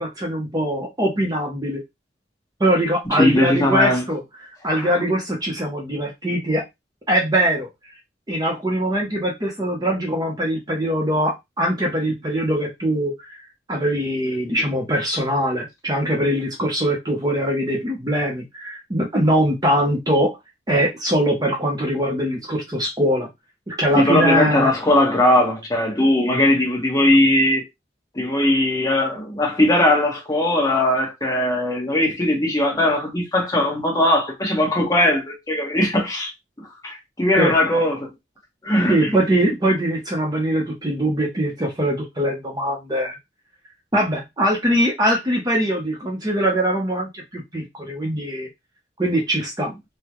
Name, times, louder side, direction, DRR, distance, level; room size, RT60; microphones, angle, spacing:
voice 1, 0.0-1.8 2.6-4.2 4.6-6.6 7.1-7.7 8.3-13.4 13.7-20.4 20.7-23.3 23.7-24.7 37.3-37.5 38.9-43.2 43.9-48.5 49.0-49.7, right 1 dB, 20° right, 0.7 m, -22 dB
voice 2, 3.1-4.1 4.6-5.0 23.9-27.7 28.1-36.3 36.8-38.1 38.6-39.1, left 1 dB, 20° left, 1.1 m, -19 dB
3.7 x 2.1 x 2.9 m
head